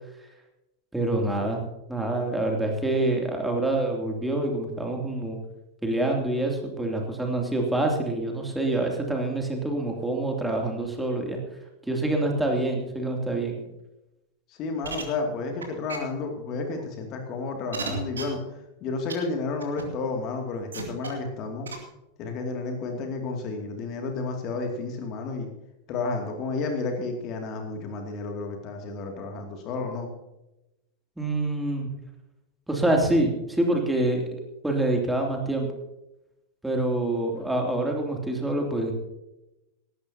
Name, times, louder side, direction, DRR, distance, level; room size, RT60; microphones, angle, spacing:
voice 1, 0.9-1.6 1.9-5.4 5.8-11.4 11.9-13.5 31.2-31.9 32.7-34.3 34.6-35.7 36.6-38.9, right 2 dB, 5° right, 1 dB, 2.8 m, -26 dB
voice 2, 14.6-18.4 18.8-21.7 22.2-25.5 25.9-30.1, left 3 dB, 35° left, 3 dB, 2.5 m, -31 dB
sound 1, 14.8-15.0 15.6-15.7 15.9-16.0 16.8-16.9 17.7-18.2 19.1-19.2 19.6-19.8 20.7-21.1 21.7-21.8, right 5 dB, 70° right, 2.6 m, -32 dB
18.5 x 15.0 x 2.9 m, 0.93 s
figure-of-eight pair, 90°, 0 cm